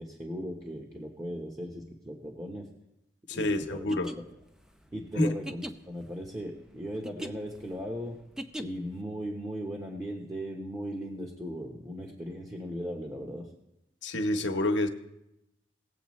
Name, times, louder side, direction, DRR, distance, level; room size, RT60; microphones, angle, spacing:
voice 1, 0.0-2.7 3.3-3.9 4.1-4.2 4.9-8.2 8.6-13.5, equal, 20° right, -2 dB, 1.0 m, -38 dB
voice 2, 3.3-4.1 5.1-5.4 14.0-14.9, left 1 dB, 75° left, 5 dB, 1.0 m, -27 dB
sound 1, 3.9-9.0, equal, 5° right, 0.5 m, -42 dB
18.5 x 7.8 x 3.1 m, 0.86 s
head